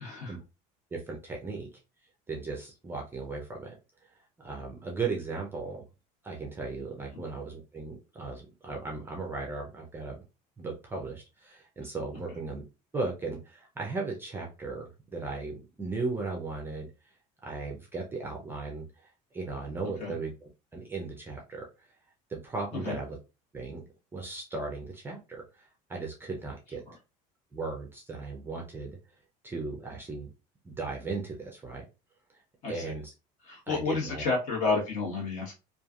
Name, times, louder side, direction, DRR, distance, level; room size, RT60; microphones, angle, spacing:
voice 1, 0.0-0.3 20.0-20.1 22.8-23.0 32.6-32.8 33.5-35.5, left 4 dB, 45° left, -1 dB, 1.2 m, -30 dB
voice 2, 0.9-1.7 2.3-3.7 4.4-5.8 6.2-10.2 10.6-12.6 12.9-16.9 17.4-18.8 19.3-21.6 22.3-23.2 23.5-23.8 24.1-26.8 27.5-29.0 29.4-30.3 30.6-31.9 32.7-33.1 33.7-34.2, right 3 dB, 15° right, 0 dB, 0.5 m, -36 dB
3.1 x 2.4 x 2.3 m, 0.30 s
cardioid pair, 155°, 17 cm